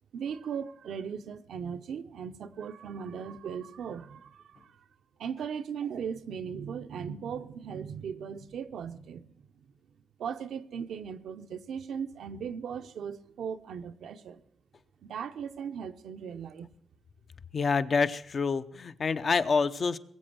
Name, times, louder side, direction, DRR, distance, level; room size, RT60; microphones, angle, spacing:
voice 1, 0.1-4.8 5.2-9.5 10.2-14.4 15.0-16.7, right 7 dB, 85° right, 0.8 m, -38 dB
voice 2, 17.5-20.0, left 4 dB, 50° left, 0.8 m, -27 dB
20.5 x 7.9 x 7.7 m
cardioid pair, 85°, 0 cm